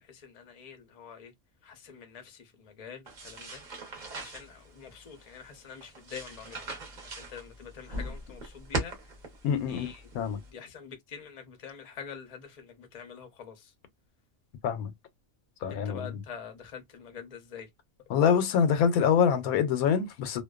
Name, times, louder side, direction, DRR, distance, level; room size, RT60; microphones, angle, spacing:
voice 1, 0.0-1.3 1.6-6.6 7.0-9.1 9.7-10.0 10.3-13.7 15.7-17.7, left 7 dB, 45° left, 0.5 m, -46 dB
sound 1, 3.1-10.5, right 2 dB, 40° right, 0.8 m, -40 dB
voice 2, 9.4-9.9 10.1-10.4 14.6-14.9 15.6-16.2 18.1-20.4, left 7 dB, 90° left, 1.1 m, -25 dB
2.5 x 2.2 x 2.3 m
omnidirectional pair, 1.5 m